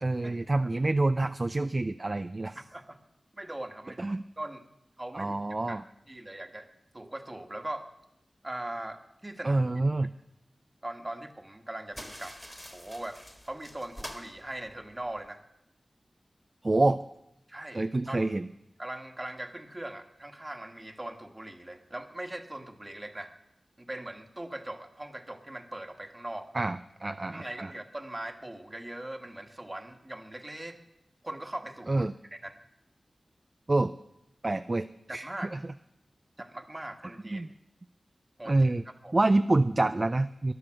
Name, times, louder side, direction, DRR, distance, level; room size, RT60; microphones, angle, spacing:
voice 1, 0.0-2.6 4.0-4.2 5.1-5.8 9.4-10.1 16.6-17.0 17.7-18.5 26.5-27.7 31.9-32.1 33.7-33.9 34.4-35.6 37.3-37.5 38.4-38.8 39.1-40.5, right 2 dB, 40° right, 10 dB, 0.4 m, -27 dB
voice 2, 2.5-3.0 3.3-4.1 4.4-4.6 5.0-5.4 5.7-5.8 6.1-6.7 6.9-7.9 8.4-9.6 10.8-12.3 12.7-13.2 13.5-15.4 17.5-18.3 18.8-23.3 23.8-26.5 27.3-30.8 31.2-32.6 35.1-35.5 36.4-37.5 38.4-39.1, right 1 dB, 25° right, 7 dB, 1.5 m, -40 dB
sound 1, 11.9-15.3, equal, 5° left, 1.7 m, -46 dB
12.5 x 11.0 x 7.4 m, 0.84 s
cardioid pair, 50°, 0 cm